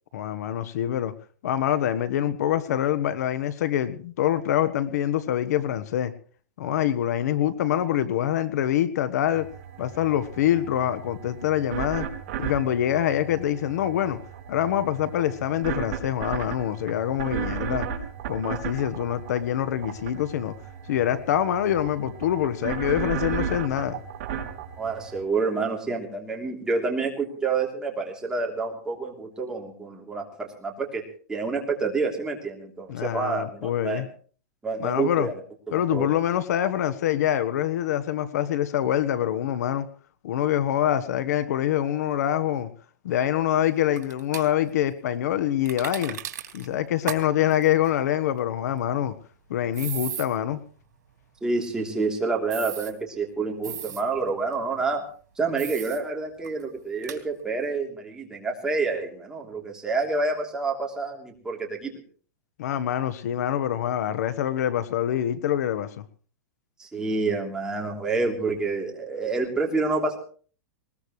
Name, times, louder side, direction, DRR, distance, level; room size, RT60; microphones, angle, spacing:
voice 1, 0.1-1.1 1.4-6.1 6.6-9.5 9.8-12.1 12.4-14.2 14.5-17.9 18.3-20.5 20.9-24.0 32.9-34.1 34.8-35.3 35.7-39.9 40.2-42.7 43.0-46.2 46.5-49.1 49.5-50.6 62.6-66.0, left 11 dB, 65° left, 1.3 m, -25 dB
sound 1, 9.3-25.2, right 8 dB, 45° right, 3.9 m, -35 dB
voice 2, 24.8-31.0 31.3-34.0 34.6-35.3 35.7-36.1 51.4-55.0 55.4-61.9 66.8-70.2, right 4 dB, 5° right, 3.3 m, -28 dB
sound 2, 44.0-44.5 45.7-46.7 47.1-47.2 47.5-47.6 49.7-50.3 52.5-52.9 53.6-54.0 55.6-56.0 56.4-56.5 57.0-57.2, right 10 dB, 85° right, 3.1 m, -35 dB
20.5 x 20.0 x 3.2 m
supercardioid pair, 155°, 9 cm